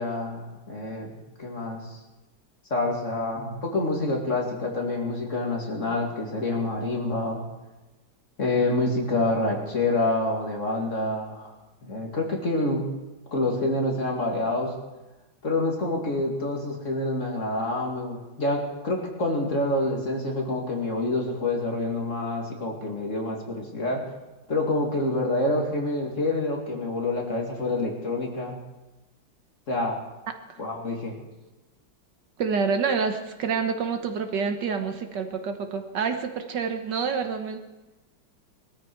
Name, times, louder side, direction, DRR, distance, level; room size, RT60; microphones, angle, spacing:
voice 1, 0.0-1.9 2.7-7.4 8.4-11.5 11.8-12.9 13.3-14.7 15.4-24.0 24.5-28.6 29.7-30.0 30.6-31.1, left 2 dB, 40° left, 0 dB, 2.7 m, -27 dB
voice 2, 32.4-37.6, right 5 dB, 70° right, 7 dB, 1.7 m, -27 dB
20.5 x 13.5 x 4.7 m, 1.1 s
omnidirectional pair, 2.0 m